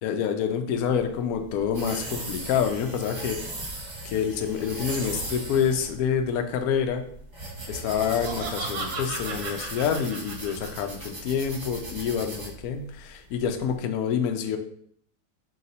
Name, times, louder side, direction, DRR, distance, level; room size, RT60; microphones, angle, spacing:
voice 1, 0.0-3.4 4.0-7.1 7.7-14.6, left 7 dB, 85° left, 5 dB, 0.8 m, -27 dB
sound 1, 0.7-13.7, right 2 dB, 35° right, 1.0 m, -38 dB
Laughter, 7.8-11.1, right 3 dB, 65° right, 1.1 m, -36 dB
3.5 x 2.9 x 4.0 m, 0.64 s
omnidirectional pair, 2.2 m